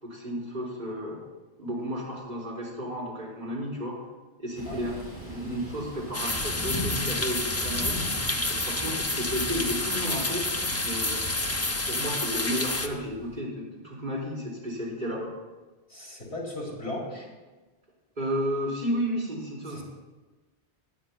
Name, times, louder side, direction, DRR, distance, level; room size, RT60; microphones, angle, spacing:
voice 1, 0.0-1.2 1.6-4.0 4.4-4.9 5.2-8.0 8.5-10.4 10.8-11.3 11.9-15.3 18.2-19.8, equal, 45° right, -7 dB, 4.4 m, -32 dB
Thunder / Rain, 4.5-13.4, equal, 10° right, 4.1 m, -39 dB
sound 1, 6.1-12.9, left 2 dB, 20° left, 0.5 m, -29 dB
voice 2, 15.9-17.3 19.7-19.8, left 1 dB, 85° left, -4 dB, 2.9 m, -36 dB
18.5 x 9.5 x 2.3 m, 1.2 s
omnidirectional pair, 1.1 m